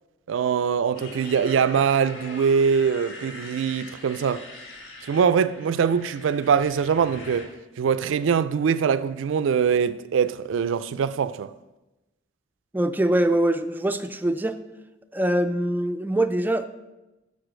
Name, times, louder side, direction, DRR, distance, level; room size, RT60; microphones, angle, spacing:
voice 1, 0.3-4.4 5.0-7.5 7.8-11.5, right 6 dB, 85° right, 0.3 m, -23 dB
Motorcycle, 0.9-7.5, left 2 dB, 75° left, 1.5 m, -42 dB
voice 2, 12.7-14.6 15.1-16.7, right 1 dB, 10° right, 0.3 m, -23 dB
6.8 x 4.9 x 6.2 m
head